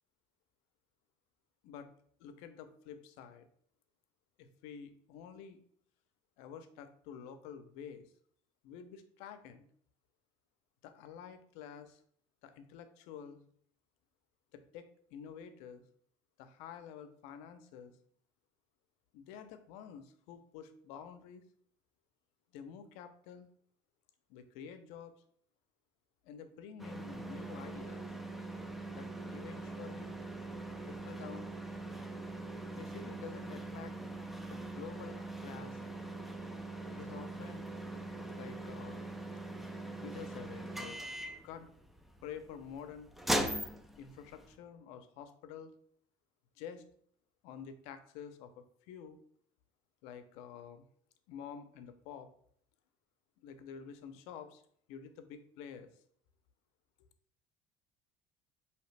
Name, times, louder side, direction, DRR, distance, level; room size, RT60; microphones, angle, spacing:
voice 1, 2.2-3.5 4.4-5.6 6.4-8.1 8.6-9.7 10.8-12.0 12.4-13.4 14.5-15.8 16.4-17.9 19.1-21.4 22.5-23.5 24.3-25.1 26.2-28.1 28.9-30.2 30.8-31.5 32.7-33.9 34.5-35.8 36.9-37.7 38.4-39.0 40.0-41.0 41.4-41.7 42.2-43.1 44.0-45.7 46.6-46.8 47.4-49.2 50.0-50.8 51.3-52.3 53.4-54.6 54.9-55.9, left 7 dB, 85° left, 10 dB, 0.5 m, -49 dB
sound 1, 26.8-44.5, right 1 dB, ahead, 0.3 m, -41 dB
4.8 x 2.9 x 3.2 m, 0.62 s
cardioid pair, 130°, 11 cm